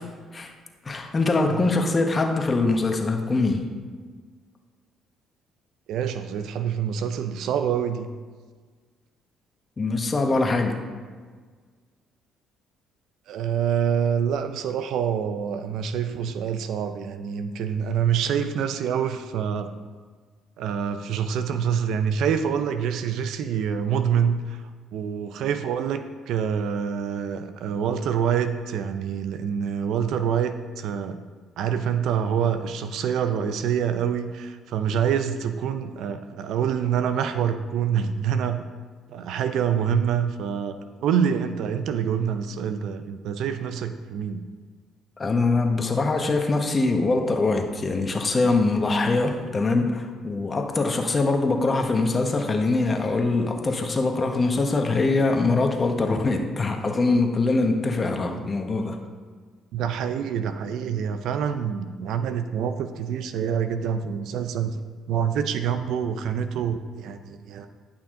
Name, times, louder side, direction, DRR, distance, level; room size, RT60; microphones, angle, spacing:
voice 1, 0.8-3.7 9.8-10.9 45.2-59.0, left 3 dB, 35° left, 4 dB, 1.3 m, -23 dB
voice 2, 5.9-8.1 13.3-19.7 20.6-24.6 24.9-31.2 31.6-38.6 39.1-44.4 59.7-64.8 65.1-67.7, right 8 dB, 70° right, 9 dB, 0.5 m, -26 dB
11.0 x 5.8 x 3.8 m, 1.5 s
hypercardioid pair, 60°, 0 cm